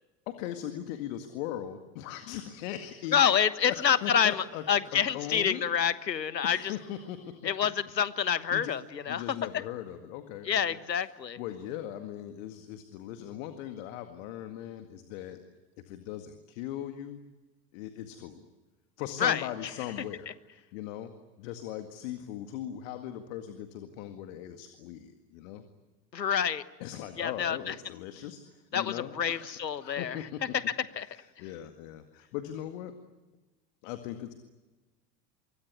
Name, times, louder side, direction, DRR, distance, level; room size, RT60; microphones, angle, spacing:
voice 1, 0.3-3.2 3.6-4.6 4.9-5.6 6.4-7.5 8.5-8.7 9.1-10.8 11.4-15.4 15.9-17.2 17.7-18.4 19.0-20.3 20.7-21.1 21.4-25.6 26.8-29.5 29.8-30.4 30.9-32.9 33.8-34.3, left 11 dB, 50° left, 8 dB, 2.1 m, -39 dB
voice 2, 3.1-6.7 7.4-9.2 10.4-11.4 19.2-19.5 26.1-26.6 27.2-27.7 28.7-30.2 31.0-31.1, left 8 dB, 75° left, 16 dB, 1.3 m, -27 dB
25.0 x 24.0 x 9.6 m, 1.2 s
figure-of-eight pair, 80°, 50 cm